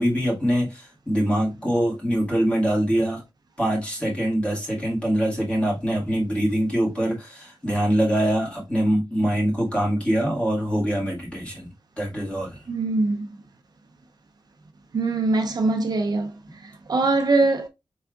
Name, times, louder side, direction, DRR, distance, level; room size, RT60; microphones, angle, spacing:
voice 1, 0.0-3.2 3.6-12.6, equal, 15° left, 1.8 m, -24 dB
voice 2, 12.7-13.3 14.9-16.3 16.9-17.7, right 3 dB, 50° right, 0.6 m, -22 dB
4.7 x 3.5 x 2.3 m
wide cardioid pair, 170°, 9 cm